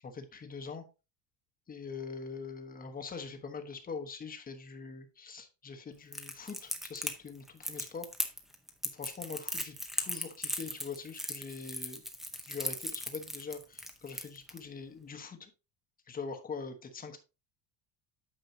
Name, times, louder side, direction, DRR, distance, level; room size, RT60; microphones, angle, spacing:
voice 1, 0.0-0.8 1.7-8.1 8.9-12.0 12.5-15.5 16.1-17.2, left 5 dB, 20° left, 6 dB, 1.1 m, -43 dB
Crackle, 6.1-14.6, equal, ahead, 0.7 m, -37 dB
9.2 x 6.8 x 2.7 m, 0.29 s
cardioid pair, 160°, 44 cm